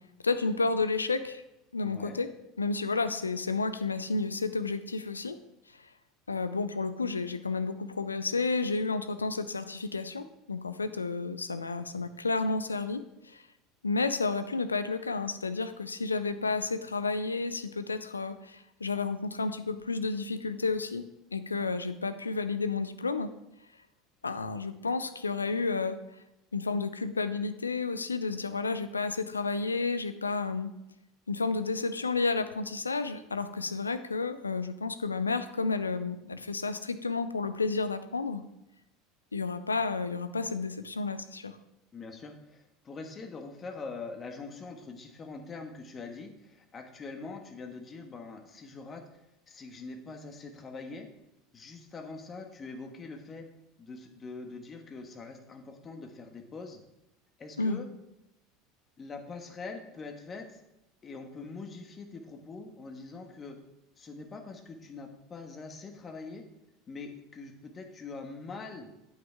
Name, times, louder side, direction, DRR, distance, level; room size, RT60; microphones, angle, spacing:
voice 1, 0.2-1.4 1.7-2.3 2.6-5.4 6.3-13.4 13.8-21.0 21.3-23.3 24.2-26.0 26.5-30.7 31.3-38.4 39.3-41.6 57.6-57.8, left 4 dB, 85° left, 11 dB, 0.5 m, -31 dB
voice 2, 1.8-2.2 41.9-51.1 51.5-53.4 53.8-56.8 57.4-57.9 59.0-60.6 61.0-63.6 64.0-66.5 66.9-68.9, left 4 dB, 30° left, 4 dB, 1.6 m, -43 dB
8.8 x 8.0 x 3.6 m, 0.88 s
figure-of-eight pair, 75°, 0 cm